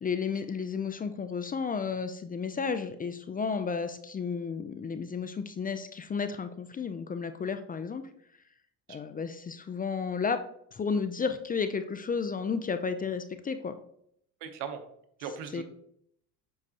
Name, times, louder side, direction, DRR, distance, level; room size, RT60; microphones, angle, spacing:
voice 1, 0.0-8.0 8.9-10.4 10.7-13.7 15.5-15.6, left 5 dB, 20° left, 9 dB, 0.4 m, -32 dB
voice 2, 14.4-14.8 15.2-15.6, right 7 dB, 80° right, 8 dB, 1.0 m, -38 dB
7.4 x 4.8 x 2.8 m, 0.70 s
supercardioid pair, 95°, 40 cm